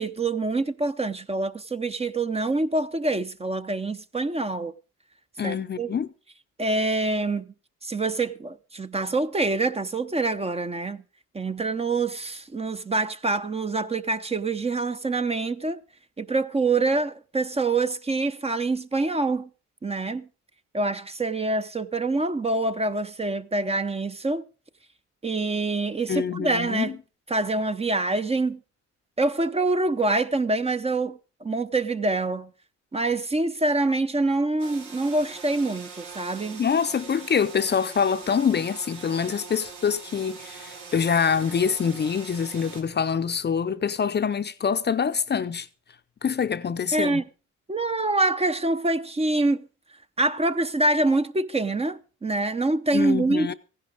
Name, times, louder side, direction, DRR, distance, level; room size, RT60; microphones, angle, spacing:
voice 1, 0.0-4.7 5.4-5.9 6.6-7.5 7.8-11.0 11.3-15.8 16.2-19.5 19.8-20.3 20.7-24.4 25.2-27.0 27.3-28.6 29.2-32.5 32.9-36.6 46.9-47.2 47.7-49.7 50.2-53.5, right 2 dB, 20° right, 0.7 m, -25 dB
voice 2, 5.4-6.1 26.1-26.9 36.6-45.7 46.2-47.2 52.9-53.5, left 6 dB, 35° left, 0.6 m, -25 dB
sound 1, 34.6-42.8, right 5 dB, 90° right, 3.1 m, -42 dB
15.5 x 11.0 x 5.0 m
cardioid pair, 90°, 30 cm